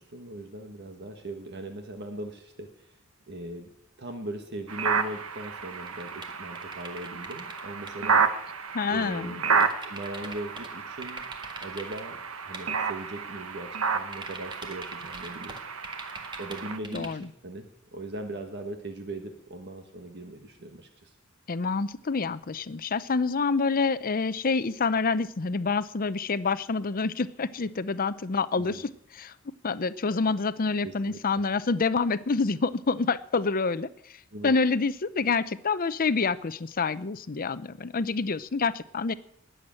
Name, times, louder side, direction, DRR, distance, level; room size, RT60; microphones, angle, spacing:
voice 1, 0.0-2.9 3.3-3.7 4.0-8.3 8.9-11.3 11.6-12.2 12.5-15.6 16.4-21.1 28.7-28.8 30.8-31.2 34.3-34.5, right 1 dB, 55° right, 5 dB, 1.5 m, -39 dB
sound 1, 4.7-16.8, right 5 dB, 85° right, 1.2 m, -31 dB
sound 2, 5.4-7.6 7.9-8.0 9.6-10.7 11.0-12.0 12.5-12.6 14.1-17.2, right 2 dB, 20° right, 1.9 m, -42 dB
voice 2, 8.7-9.3 16.9-17.3 21.5-29.3 29.6-33.9 34.4-39.1, left 4 dB, 45° left, 15 dB, 0.6 m, -27 dB
20.0 x 8.0 x 7.6 m, 0.72 s
head